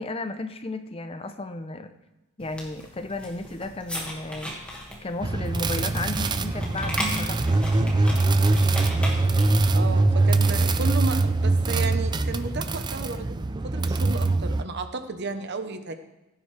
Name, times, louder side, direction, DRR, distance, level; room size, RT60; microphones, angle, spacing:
voice 1, 0.0-1.9 2.4-4.5 5.0-7.4 9.3-9.9, left 2 dB, 25° left, 9 dB, 0.6 m, -34 dB
sound 1, 2.4-9.6, equal, 5° left, 1.9 m, -36 dB
sound 2, 5.2-14.6, right 2 dB, 20° right, 0.4 m, -23 dB
voice 2, 9.7-13.4 13.6-15.9, right 3 dB, 50° right, 8 dB, 0.9 m, -33 dB
16.0 x 9.3 x 3.3 m, 1.0 s
head